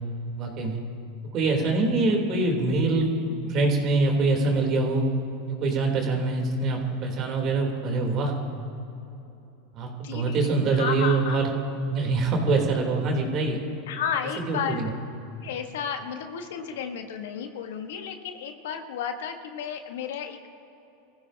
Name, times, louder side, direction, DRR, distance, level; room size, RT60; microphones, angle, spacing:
voice 1, 0.4-0.8 1.3-5.0 5.5-8.3 9.7-11.4 11.9-13.6 14.5-14.9, right 3 dB, 45° right, 1 dB, 3.3 m, -24 dB
voice 2, 9.9-11.4 13.9-14.9 15.4-20.5, left 7 dB, 80° left, 6 dB, 1.4 m, -33 dB
27.0 x 15.0 x 2.8 m, 2.9 s
supercardioid pair, 115°, 0 cm